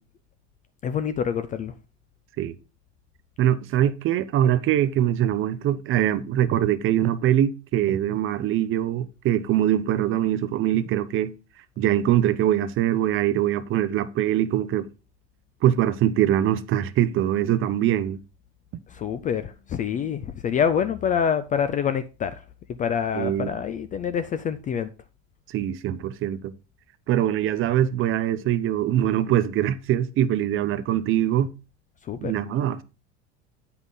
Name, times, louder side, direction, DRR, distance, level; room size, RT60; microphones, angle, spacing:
voice 1, 0.8-1.7 18.9-22.4 22.8-24.9 32.0-32.3, left 7 dB, 25° left, 0.3 m, -26 dB
voice 2, 3.4-11.3 11.8-14.9 15.6-18.2 23.1-23.5 25.5-26.5 27.1-31.5 32.2-32.8, right 11 dB, 35° right, 0.6 m, -23 dB
8.0 x 5.6 x 3.9 m
supercardioid pair, 115°, 36 cm